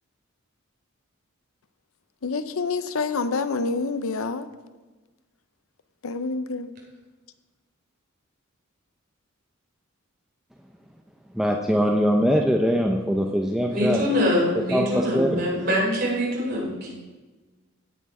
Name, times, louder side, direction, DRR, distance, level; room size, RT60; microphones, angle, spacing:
voice 1, 2.2-4.5 6.0-6.7, left 4 dB, 85° left, 12 dB, 0.6 m, -27 dB
voice 2, 11.3-14.0 14.7-15.4, equal, ahead, 0 dB, 0.6 m, -22 dB
voice 3, 13.7-17.0, left 1 dB, 50° right, -3 dB, 3.5 m, -24 dB
16.5 x 6.2 x 4.9 m, 1.3 s
head